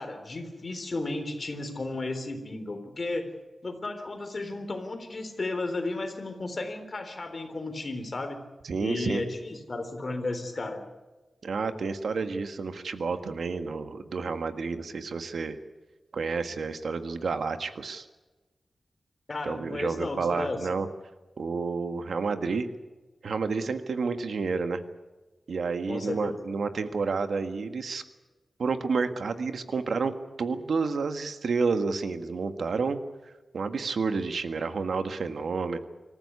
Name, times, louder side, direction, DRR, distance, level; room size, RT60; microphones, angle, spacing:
voice 1, 0.0-3.3 3.6-8.4 8.8-10.8 19.3-20.6 25.9-26.4, left 2 dB, 40° left, 7 dB, 3.7 m, -34 dB
voice 2, 8.6-9.2 11.4-15.6 16.1-18.1 19.4-20.9 21.4-22.7 23.2-24.8 25.5-28.0 28.6-35.8, right 4 dB, 80° right, 9 dB, 1.6 m, -30 dB
26.0 x 14.5 x 9.8 m, 1.2 s
wide cardioid pair, 145°, 0 cm